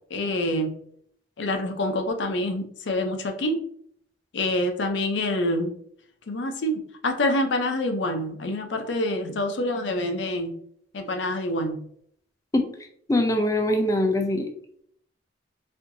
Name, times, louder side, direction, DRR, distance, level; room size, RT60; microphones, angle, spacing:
voice 1, 0.1-0.7 1.4-3.6 4.3-5.7 6.3-10.5 10.9-11.8, left 1 dB, 75° left, 5 dB, 0.6 m, -26 dB
voice 2, 13.1-14.5, left 1 dB, 20° left, 4 dB, 0.4 m, -22 dB
4.3 x 2.7 x 2.6 m, 0.66 s
head